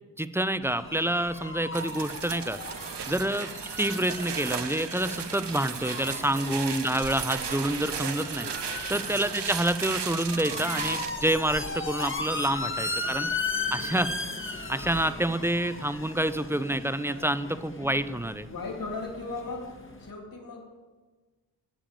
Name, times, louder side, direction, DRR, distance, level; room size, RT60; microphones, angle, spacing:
voice 1, 0.2-2.6 3.1-3.5 3.8-8.5 8.9-13.3 13.7-14.1 14.7-18.5, right 1 dB, 5° right, 13 dB, 0.5 m, -28 dB
sound 1, 0.6-20.1, left 3 dB, 30° left, 1.4 m, -37 dB
sound 2, 1.7-11.1, right 7 dB, 70° right, 0.9 m, -35 dB
voice 2, 3.0-3.4 6.2-6.8 8.8-9.2 12.4-12.5 13.0-13.3 13.7-14.1 18.4-20.7, left 3 dB, 50° left, 0 dB, 3.0 m, -39 dB
12.5 x 7.0 x 9.1 m, 1.3 s
wide cardioid pair, 80°, 44 cm